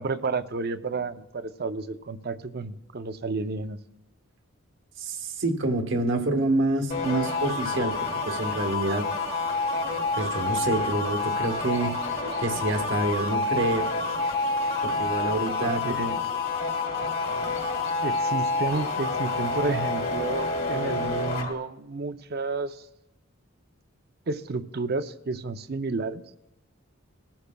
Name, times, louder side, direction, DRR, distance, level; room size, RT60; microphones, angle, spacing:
voice 1, 0.0-3.8 15.6-16.2 18.0-22.8 24.3-26.2, right 3 dB, 50° right, 10 dB, 0.6 m, -31 dB
voice 2, 5.0-9.1 10.2-12.0 12.4-13.9 14.8-16.0 16.3-16.4, right 2 dB, 65° right, 5 dB, 1.3 m, -27 dB
sound 1, 6.9-21.3, left 2 dB, 75° left, 2.9 m, -45 dB
sound 2, 6.9-21.5, left 3 dB, 50° left, 2.2 m, -28 dB
21.0 x 13.0 x 2.3 m, 0.86 s
head